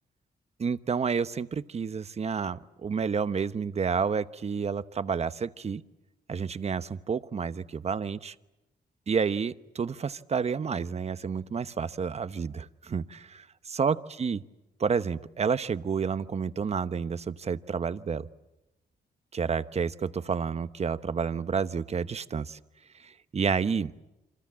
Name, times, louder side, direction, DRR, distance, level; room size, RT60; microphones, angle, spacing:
voice 1, 0.6-5.8 6.3-8.3 9.1-14.4 14.8-18.3 19.3-22.6 23.0-23.9, right 6 dB, 40° right, 13 dB, 1.0 m, -30 dB
28.0 x 25.5 x 7.5 m, 0.98 s
cardioid pair, 95°, 17 cm